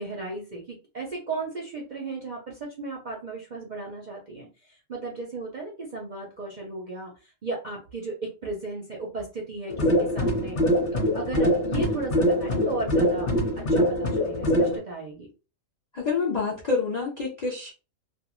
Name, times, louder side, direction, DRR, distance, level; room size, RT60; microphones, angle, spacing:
voice 1, 0.0-10.6 10.9-13.3 13.7-15.3, right 3 dB, 55° right, 0.5 m, -35 dB
sound 1, 9.7-14.8, left 1 dB, 40° left, 0.8 m, -23 dB
voice 2, 15.9-17.7, left 4 dB, 65° left, 0.4 m, -27 dB
2.4 x 2.1 x 3.0 m
omnidirectional pair, 1.5 m